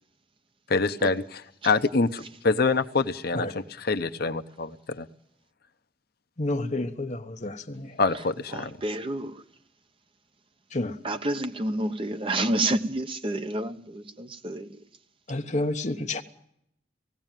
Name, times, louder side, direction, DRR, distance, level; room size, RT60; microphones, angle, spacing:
voice 1, 0.7-1.2 1.6-3.5 3.8-5.1 8.0-8.8, left 3 dB, 55° left, 0.8 m, -25 dB
voice 2, 6.4-8.0 10.7-11.0 12.4-12.5 15.3-16.2, left 2 dB, 40° left, 1.2 m, -30 dB
voice 3, 8.5-9.4 11.0-14.8, right 1 dB, 30° right, 1.0 m, -29 dB
19.0 x 16.5 x 9.1 m
head